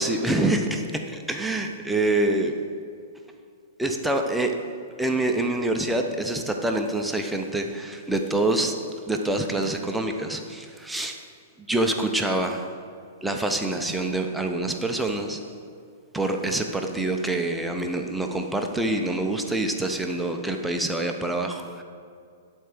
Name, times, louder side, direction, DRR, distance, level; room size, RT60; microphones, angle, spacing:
voice 1, 0.0-2.5 3.8-4.5 5.0-8.7 9.1-11.2 11.7-12.7 13.2-15.4 16.1-21.8, right 2 dB, 5° right, 3 dB, 0.8 m, -26 dB
11.0 x 4.5 x 6.7 m, 2.3 s
figure-of-eight pair, 110°, 0 cm